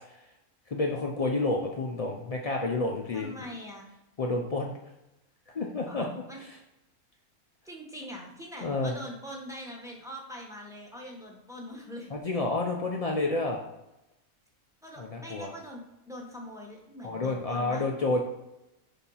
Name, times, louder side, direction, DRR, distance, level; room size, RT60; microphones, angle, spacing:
voice 1, 0.7-3.3 4.2-4.7 5.5-6.1 8.6-8.9 12.1-13.6 15.0-15.5 17.0-18.2, left 2 dB, 75° left, 0 dB, 0.3 m, -29 dB
voice 2, 3.1-3.9 5.9-6.4 7.6-12.1 14.8-17.9, equal, 5° right, -1 dB, 0.9 m, -43 dB
6.9 x 2.7 x 5.5 m, 0.93 s
omnidirectional pair, 1.5 m